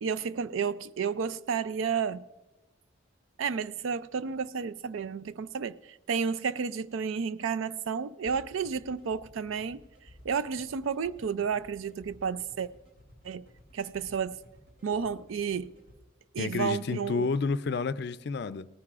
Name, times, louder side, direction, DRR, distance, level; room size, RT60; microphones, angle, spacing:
voice 1, 0.0-2.2 3.4-9.8 10.2-12.7 13.2-13.4 13.7-14.4 14.8-15.7 16.3-17.3, right 6 dB, 85° right, 0.4 m, -31 dB
sound 1, 8.3-16.0, left 1 dB, 65° right, 5.4 m, -56 dB
voice 2, 16.4-18.7, left 4 dB, 55° left, 0.4 m, -30 dB
18.0 x 14.5 x 2.5 m
head